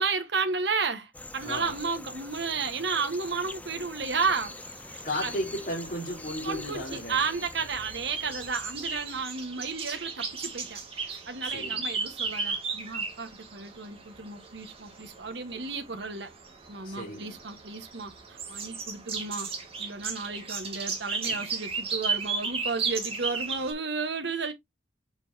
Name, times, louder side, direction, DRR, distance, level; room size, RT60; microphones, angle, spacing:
voice 1, 0.0-4.5 4.9-5.3 6.4-16.3 16.7-19.5 19.8-24.5, right 4 dB, 65° right, 1.4 m, -33 dB
sound 1, 1.1-9.3, left 2 dB, 10° left, 0.6 m, -44 dB
voice 2, 1.4-1.8 5.0-7.3 11.4-11.9 16.8-17.4 21.2-21.4, equal, 40° left, 3.7 m, -35 dB
sound 2, 4.3-23.7, right 4 dB, 30° right, 2.1 m, -35 dB
7.1 x 5.2 x 2.8 m
head